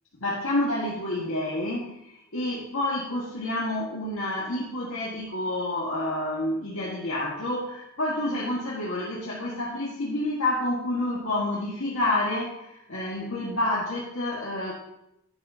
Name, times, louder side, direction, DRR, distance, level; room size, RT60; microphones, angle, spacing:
voice 1, 0.2-14.7, left 1 dB, 75° left, -5 dB, 1.8 m, -29 dB
11.0 x 9.8 x 2.8 m, 0.84 s
head